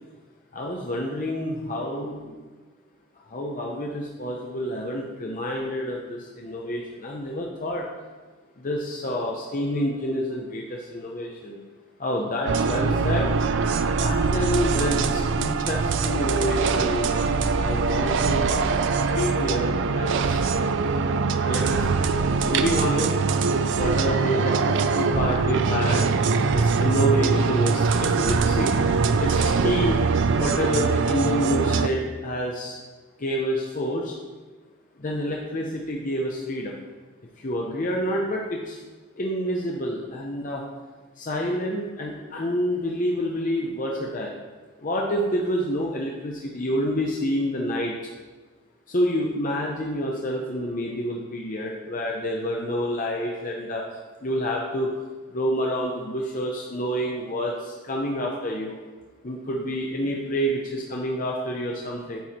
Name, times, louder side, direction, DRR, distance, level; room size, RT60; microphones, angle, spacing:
voice 1, 0.5-2.4 3.2-7.8 8.6-11.6 12.0-13.3 14.0-17.3 17.6-18.5 19.1-20.4 21.4-23.2 23.7-26.1 26.5-28.7 29.2-30.0 30.4-32.8 33.2-34.1 35.0-36.8 37.4-38.8 39.2-40.6 41.2-44.3 44.8-48.0 48.9-53.9 54.2-54.9 55.3-58.8 59.2-62.2, equal, 35° left, -1 dB, 0.7 m, -28 dB
sound 1, 12.5-31.9, right 4 dB, 55° right, 0.4 m, -23 dB
9.3 x 4.6 x 4.3 m, 1.3 s
head